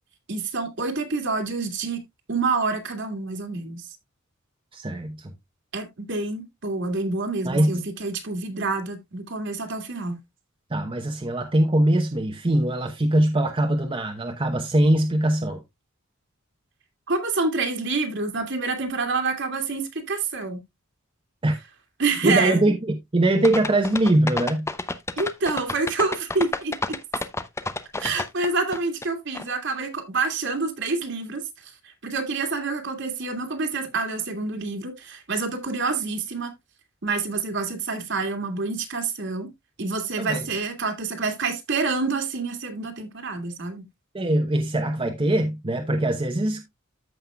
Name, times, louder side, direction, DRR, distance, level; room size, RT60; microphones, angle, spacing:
voice 1, 0.3-2.0 2.3-3.9 5.7-10.2 17.1-20.6 22.0-22.6 25.2-27.0 28.0-31.7 32.0-36.5 37.0-39.5 39.8-43.8, right 3 dB, 60° right, 2.1 m, -27 dB
voice 2, 4.7-5.3 7.4-7.8 10.7-15.6 21.4-21.6 22.2-24.7 28.1-28.2 40.2-40.5 44.1-46.8, right 1 dB, 25° right, 0.9 m, -22 dB
sound 1, 23.4-29.1 29.3-29.4, left 2 dB, 15° left, 0.6 m, -29 dB
14.0 x 5.6 x 2.3 m
head